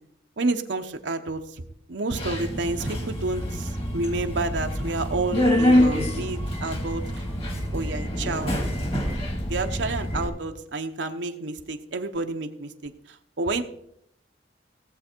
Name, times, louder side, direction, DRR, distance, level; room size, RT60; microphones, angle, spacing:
voice 1, 0.4-1.4 1.9-7.0 7.7-8.5 9.5-12.9 13.4-13.6, right 3 dB, 70° right, 5 dB, 0.9 m, -29 dB
Subway metro underground, 2.2-10.3, equal, 35° left, 2.1 m, -26 dB
18.0 x 7.7 x 4.5 m, 0.73 s
head